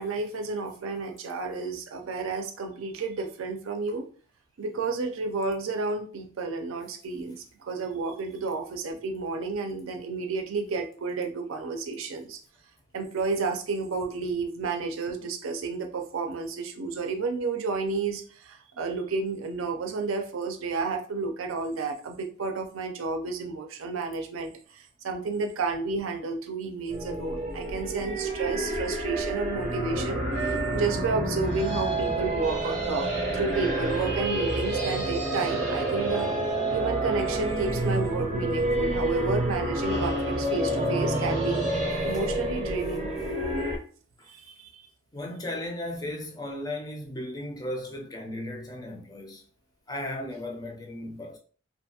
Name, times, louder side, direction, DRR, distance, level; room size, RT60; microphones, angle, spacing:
voice 1, 0.0-4.0 4.6-12.4 12.9-24.5 25.0-33.1 33.3-36.3 36.7-41.7 42.0-43.2 44.3-44.8, right 4 dB, 85° right, 0.5 m, -31 dB
sound 1, 26.9-43.8, right 1 dB, 35° right, 0.5 m, -28 dB
voice 2, 45.1-49.4 49.9-51.4, left 1 dB, 20° left, 0.4 m, -36 dB
2.6 x 2.2 x 2.8 m
head